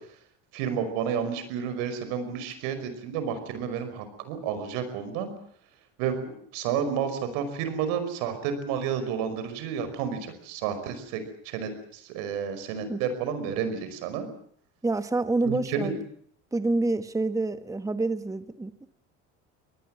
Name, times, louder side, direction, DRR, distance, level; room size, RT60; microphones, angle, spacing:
voice 1, 0.5-5.3 6.0-14.3 15.5-15.9, right 7 dB, 80° right, 10 dB, 5.4 m, -31 dB
voice 2, 14.8-16.0 16.5-18.9, right 2 dB, 10° right, 11 dB, 1.2 m, -27 dB
25.5 x 19.5 x 7.7 m, 0.64 s
supercardioid pair, 90°, 33 cm